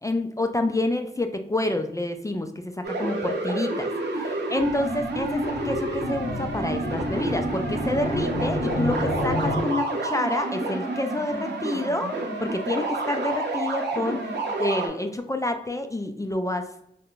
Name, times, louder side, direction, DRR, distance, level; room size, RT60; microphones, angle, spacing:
voice 1, 0.0-14.3 14.6-16.8, left 1 dB, 20° left, 6 dB, 0.3 m, -28 dB
sound 1, 2.8-14.9, right 2 dB, 75° right, 0.6 m, -29 dB
sound 2, 4.6-9.6, left 1 dB, 60° left, 0.9 m, -30 dB
3.6 x 2.1 x 2.3 m, 0.77 s
cardioid pair, 40°, 18 cm